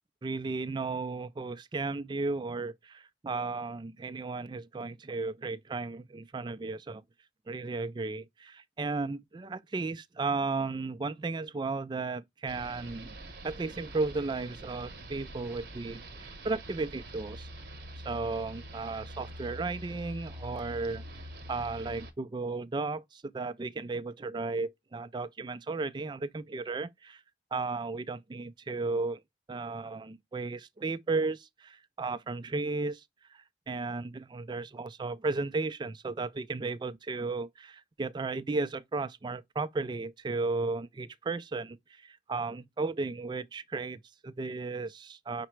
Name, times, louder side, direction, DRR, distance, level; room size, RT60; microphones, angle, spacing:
voice 1, 0.2-7.0 7.5-13.2 13.4-17.5 18.0-21.0 21.5-27.2 27.5-29.2 29.5-33.0 33.3-45.5, right 3 dB, 25° right, 0.3 m, -34 dB
sound 1, 12.5-22.1, right 1 dB, 60° right, 0.9 m, -45 dB
5.8 x 2.1 x 4.4 m
head